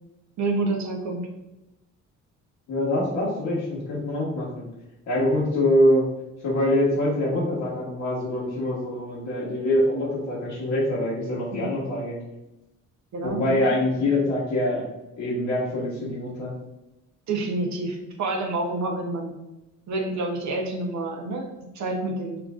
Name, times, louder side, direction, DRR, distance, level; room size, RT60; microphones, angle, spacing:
voice 1, 0.4-1.3 11.5-11.7 13.1-13.8 17.3-19.3 19.9-22.4, right 2 dB, 65° right, 1 dB, 0.8 m, -28 dB
voice 2, 2.7-4.7 5.1-6.0 6.4-12.2 13.2-14.9 15.2-16.5, left 1 dB, 85° left, -9 dB, 1.1 m, -24 dB
5.6 x 2.5 x 2.4 m, 0.97 s
cardioid pair, 90°, 30 cm